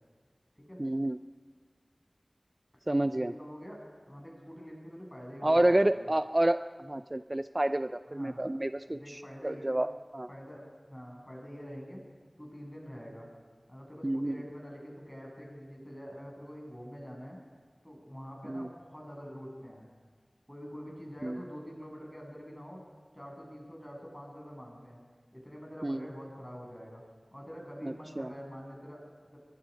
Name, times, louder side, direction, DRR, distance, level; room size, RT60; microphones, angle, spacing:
voice 1, 0.8-1.2 2.9-3.3 5.4-10.3 14.0-14.4 18.5-18.7 21.2-21.4 25.8-26.1 27.8-28.3, right 1 dB, 35° right, 10 dB, 0.5 m, -29 dB
voice 2, 3.1-3.8 4.1-6.1 8.1-8.4 8.9-9.8 10.3-12.0 12.4-13.3 13.7-17.4 17.8-19.9 20.5-22.8 23.1-25.0 25.3-27.0 27.3-29.4, equal, 15° left, -1 dB, 7.7 m, -46 dB
24.5 x 21.0 x 5.3 m, 1.5 s
wide cardioid pair, 45°, 0 cm